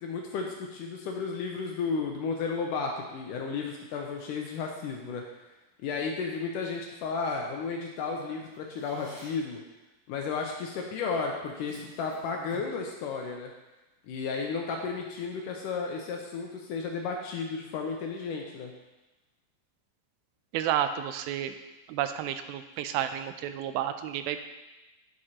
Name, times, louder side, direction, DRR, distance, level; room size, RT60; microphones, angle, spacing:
voice 1, 0.0-5.2 5.8-9.6 10.1-13.5 14.1-18.7, left 4 dB, 80° left, 1 dB, 2.0 m, -33 dB
Drawer open or close, 8.3-9.5 10.7-10.9 11.4-12.8, equal, 10° right, 1.8 m, -51 dB
voice 2, 20.5-21.5 21.9-24.5, right 10 dB, 90° right, 10 dB, 2.4 m, -31 dB
9.4 x 7.7 x 2.9 m, 1.1 s
omnidirectional pair, 4.2 m